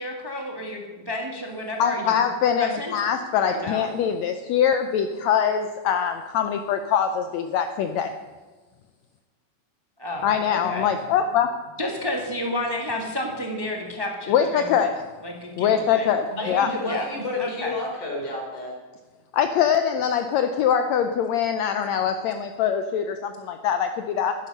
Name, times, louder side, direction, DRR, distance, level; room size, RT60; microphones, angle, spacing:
voice 1, 0.0-2.2 2.6-2.9 3.4-3.9 10.0-10.9 11.8-16.1 16.8-17.0 17.4-17.7, left 1 dB, 25° right, 1 dB, 0.4 m, -31 dB
voice 2, 1.8-8.1 10.2-11.5 14.3-15.0 15.6-16.7 19.3-24.3, left 8 dB, 75° left, 7 dB, 1.7 m, -23 dB
voice 3, 16.3-18.7, left 2 dB, 50° left, -3 dB, 5.0 m, -30 dB
12.5 x 11.0 x 5.4 m, 1.4 s
omnidirectional pair, 3.6 m